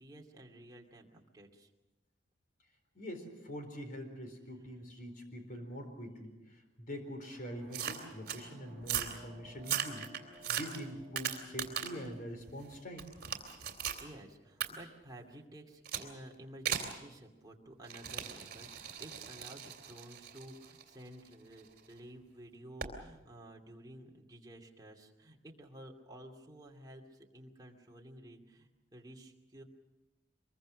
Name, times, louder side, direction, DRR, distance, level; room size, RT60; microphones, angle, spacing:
voice 1, 0.0-1.7 14.0-29.6, right 1 dB, 20° right, 0 dB, 2.5 m, -52 dB
voice 2, 2.9-13.1, equal, 50° left, 6 dB, 4.2 m, -44 dB
sound 1, 7.1-15.0, equal, ahead, 7.7 m, -60 dB
sound 2, 7.7-8.4 8.8-9.2 9.6-12.1 12.5-14.0 14.6-14.7 15.9-16.1 16.7-17.0 17.8-21.8 22.8-23.0, right 9 dB, 55° right, 2.9 m, -38 dB
24.5 x 22.5 x 6.4 m, 1.0 s
head